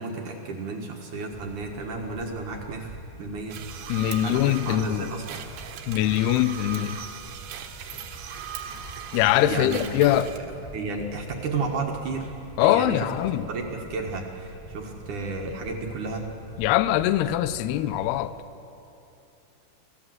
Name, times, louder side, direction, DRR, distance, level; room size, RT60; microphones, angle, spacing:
voice 1, 0.0-2.9 3.2-3.6 4.2-5.4 9.5-9.8 10.1-10.2 10.7-12.3 12.6-16.3, right 3 dB, 60° right, 2.3 m, -32 dB
sound 1, 1.3-18.3, right 1 dB, 20° left, 3.2 m, -45 dB
sound 2, 3.5-10.4, right 8 dB, 75° right, 3.1 m, -39 dB
voice 2, 3.9-5.1 5.9-7.0 9.1-10.3 12.6-13.5 16.6-18.3, left 13 dB, 80° left, 2.4 m, -23 dB
29.0 x 15.0 x 7.8 m
omnidirectional pair, 5.2 m